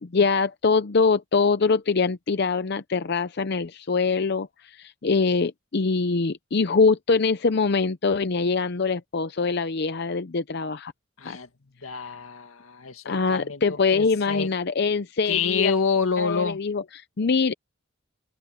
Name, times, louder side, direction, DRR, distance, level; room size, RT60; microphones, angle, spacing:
voice 1, 0.0-10.9 11.2-11.4 13.0-15.7 16.2-17.5, left 4 dB, 50° left, 0.6 m, -23 dB
voice 2, 11.2-11.5 11.8-14.5 15.3-16.6, left 5 dB, 85° left, 2.0 m, -27 dB
open air
head